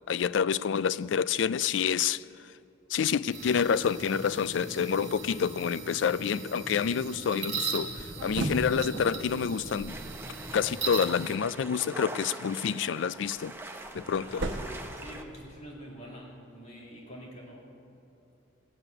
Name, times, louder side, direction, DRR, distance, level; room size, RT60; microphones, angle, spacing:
voice 1, 0.1-2.2 2.9-9.9 10.5-13.5 13.9-14.4, left 7 dB, 75° left, 0.4 m, -28 dB
sound 1, 3.3-11.4, right 4 dB, 35° right, 1.8 m, -39 dB
sound 2, 7.8-10.9 13.1-15.7, right 1 dB, 80° right, 1.1 m, -37 dB
sound 3, 9.9-15.2, right 2 dB, 10° right, 0.7 m, -43 dB
voice 2, 14.2-18.0, equal, 35° left, 2.4 m, -46 dB
17.0 x 7.6 x 9.0 m
head